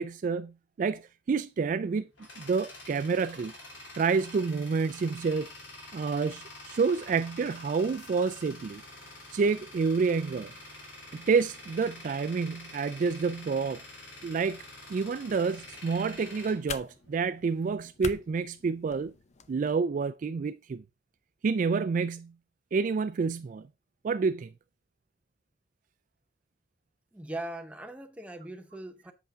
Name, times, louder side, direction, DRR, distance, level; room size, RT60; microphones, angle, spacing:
voice 1, 0.0-2.1 2.4-3.5 4.0-5.5 5.9-8.8 9.3-10.5 11.1-13.8 14.2-14.6 14.9-19.1 19.5-20.8 21.4-22.3 22.7-23.7 24.0-24.5, right 5 dB, 45° right, 0.3 m, -28 dB
Tools, 1.7-17.5, left 2 dB, 80° left, 2.7 m, -47 dB
sound 1, 15.6-19.5, left 5 dB, 35° left, 0.5 m, -44 dB
voice 2, 27.1-29.1, right 1 dB, 5° right, 0.8 m, -40 dB
8.1 x 5.7 x 3.5 m
head